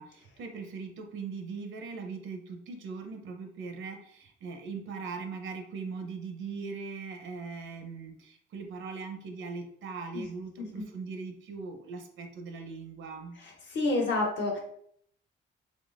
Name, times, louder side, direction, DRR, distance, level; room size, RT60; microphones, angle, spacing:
voice 1, 0.0-13.4, right 4 dB, 75° right, 4 dB, 0.8 m, -40 dB
voice 2, 13.4-14.6, left 2 dB, 65° left, 0 dB, 1.2 m, -29 dB
3.7 x 3.2 x 2.5 m, 0.66 s
cardioid pair, 90°, 20 cm